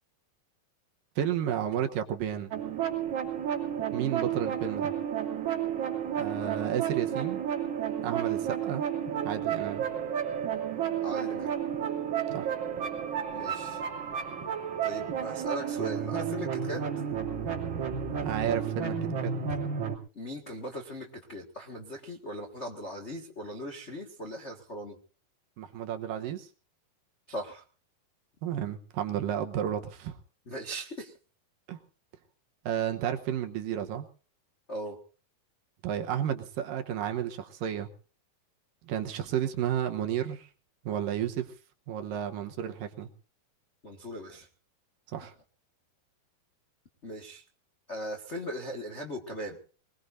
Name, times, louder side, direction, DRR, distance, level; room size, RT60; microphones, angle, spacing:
voice 1, 1.2-2.5 3.9-4.9 6.2-7.4 8.0-8.8 9.2-9.8 12.3-12.5 18.2-19.3 25.6-26.5 28.4-30.2 31.7-31.8 32.7-34.1 35.8-37.9 38.9-40.5 40.9-41.5 41.9-43.1 45.1-45.3, right 10 dB, 70° right, 5 dB, 2.6 m, -32 dB
sound 1, 2.5-20.0, right 8 dB, 50° right, 3.8 m, -32 dB
voice 2, 11.0-11.5 13.3-13.8 14.8-16.8 19.5-19.6 20.1-25.0 27.3-27.6 30.4-31.1 34.7-35.0 43.8-44.5 47.0-47.4 47.9-49.6, equal, 45° left, 1 dB, 0.8 m, -39 dB
23.0 x 20.5 x 2.7 m, 0.39 s
omnidirectional pair, 4.4 m